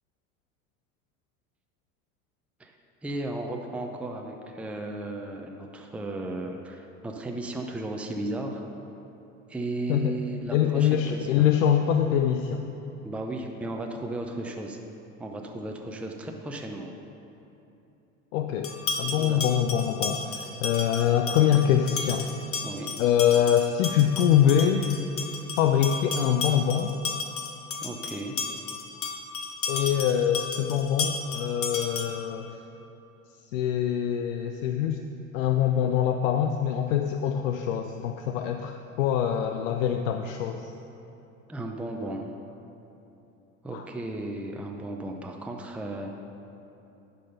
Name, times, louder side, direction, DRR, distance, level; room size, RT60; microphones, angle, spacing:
voice 1, 3.0-8.6 9.5-11.5 13.0-14.8 15.2-16.9 19.0-19.4 22.6-22.9 27.8-28.4 41.5-42.3 43.6-46.1, right 2 dB, 5° right, 2 dB, 0.6 m, -35 dB
voice 2, 10.5-12.7 18.3-22.3 23.0-24.8 25.6-26.9 29.7-32.6 33.5-35.0 35.3-40.7 43.7-43.8, left 9 dB, 80° left, 6 dB, 0.5 m, -24 dB
sound 1, 18.6-32.3, left 4 dB, 35° left, 0.9 m, -34 dB
10.5 x 4.0 x 5.4 m, 2.9 s
hypercardioid pair, 80°, 39 cm